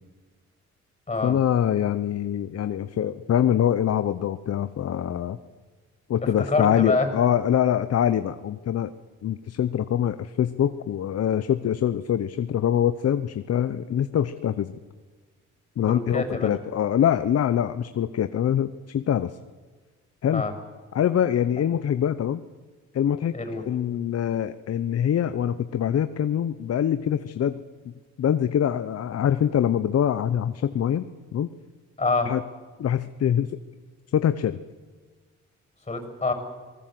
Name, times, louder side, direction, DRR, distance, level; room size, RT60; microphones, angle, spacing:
voice 1, 1.2-5.4 6.1-8.9 9.2-14.7 15.8-19.4 20.2-20.4 20.9-22.4 22.9-23.3 23.6-27.6 28.2-31.0 31.3-31.5 32.2-32.4 32.8-33.6 34.1-34.6, left 9 dB, 55° left, 11 dB, 0.9 m, -24 dB
voice 2, 6.5-7.1 15.8-16.5 20.3-20.5 23.3-23.6 32.0-32.3 35.9-36.3, left 3 dB, 20° left, 6 dB, 6.5 m, -26 dB
26.5 x 19.5 x 7.8 m, 1.4 s
cardioid pair, 90°, 30 cm